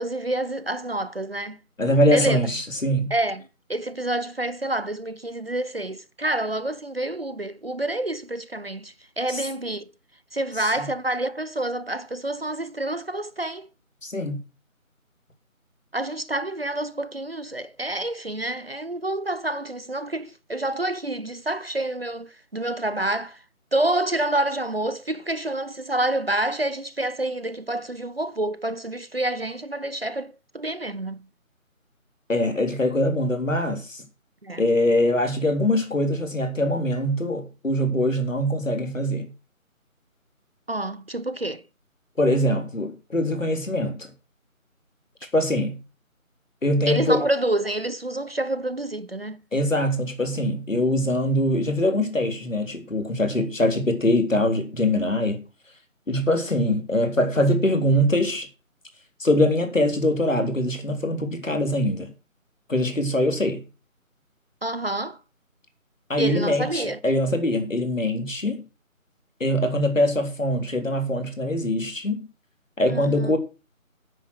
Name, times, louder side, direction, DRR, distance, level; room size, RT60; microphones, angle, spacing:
voice 1, 0.0-1.6 2.1-2.4 3.1-9.9 10.3-13.7 15.9-23.4 23.7-31.3 34.4-34.6 40.7-41.6 46.9-49.4 64.6-65.2 66.2-67.0 72.9-73.3, right 1 dB, 45° right, 0.7 m, -28 dB
voice 2, 1.8-3.1 9.3-9.4 10.8-10.9 14.0-14.4 32.3-34.0 34.6-39.3 42.2-44.1 45.3-45.8 46.6-47.2 49.5-55.4 56.1-58.5 59.2-62.1 62.7-63.6 66.1-68.6 69.4-72.3 72.8-73.4, left 1 dB, 65° left, 3.8 m, -23 dB
9.7 x 9.3 x 6.2 m
figure-of-eight pair, 160°, 42 cm